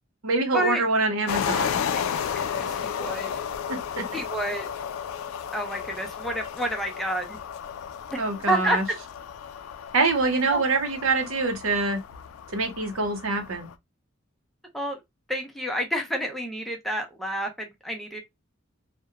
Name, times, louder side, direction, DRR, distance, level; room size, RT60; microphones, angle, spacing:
voice 1, 0.2-1.8 3.7-4.2 8.2-8.9 9.9-12.0 12.5-13.7, right 3 dB, 90° right, 0.7 m, -25 dB
sound 1, 1.3-13.7, left 8 dB, 85° left, 0.3 m, -33 dB
voice 2, 2.4-3.3 4.1-4.7 5.5-7.4 8.1-8.2 8.5-8.8 10.5-10.6 14.7-15.0 15.3-18.2, right 1 dB, ahead, 0.5 m, -29 dB
2.8 x 2.1 x 2.2 m
head